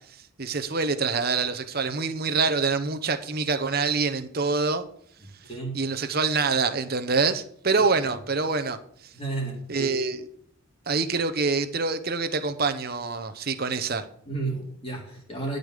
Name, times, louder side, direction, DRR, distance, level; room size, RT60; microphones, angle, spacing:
voice 1, 0.4-4.8 5.7-8.8 9.7-10.2 10.9-14.1, right 4 dB, 45° right, 10 dB, 0.9 m, -25 dB
voice 2, 5.2-5.8 8.0-8.1 9.1-9.9 14.3-15.6, right 3 dB, 25° left, -2 dB, 3.8 m, -33 dB
13.0 x 5.4 x 6.6 m, 0.64 s
head